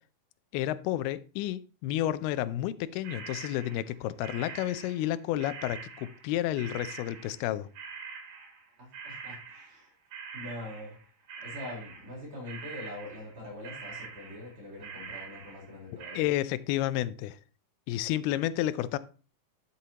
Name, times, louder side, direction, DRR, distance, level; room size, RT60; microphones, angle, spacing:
voice 1, 0.5-7.7 16.2-17.4 17.9-19.0, left 13 dB, 90° left, 16 dB, 2.5 m, -31 dB
sound 1, 3.0-9.9 10.1-12.2 12.5-13.4 13.6-16.2, right 5 dB, 70° right, 3.6 m, -44 dB
voice 2, 8.8-9.9 10.3-11.0 11.4-16.3, left 1 dB, 35° right, -5 dB, 4.7 m, -43 dB
11.5 x 7.0 x 2.8 m, 0.37 s
omnidirectional pair, 4.4 m